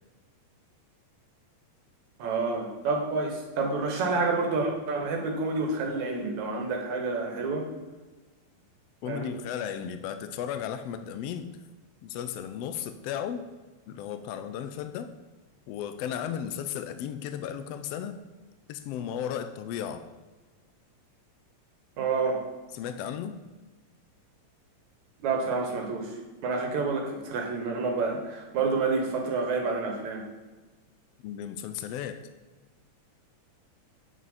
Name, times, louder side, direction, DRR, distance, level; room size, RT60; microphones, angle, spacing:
voice 1, 2.2-7.7 9.0-9.3 22.0-22.4 25.2-30.2, right 4 dB, 75° right, 2 dB, 2.6 m, -29 dB
voice 2, 9.0-11.5 12.0-13.4 13.9-15.1 15.7-18.2 18.7-20.1 22.7-23.4 31.2-32.2, left 9 dB, 80° left, 10 dB, 1.4 m, -35 dB
9.3 x 6.3 x 4.2 m, 1.3 s
omnidirectional pair, 3.4 m